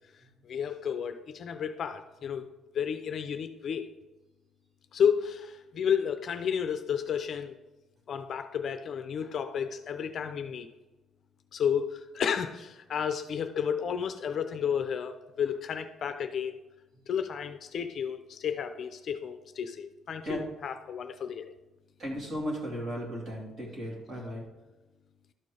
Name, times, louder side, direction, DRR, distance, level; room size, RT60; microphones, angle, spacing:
voice 1, 0.4-2.4 2.7-3.9 4.9-7.5 8.1-10.7 11.5-16.6 17.1-21.5, left 7 dB, 45° left, 9 dB, 0.5 m, -32 dB
voice 2, 22.0-24.5, equal, 35° right, -3 dB, 2.7 m, -36 dB
12.0 x 4.4 x 4.9 m, 1.1 s
cardioid pair, 160°, 0 cm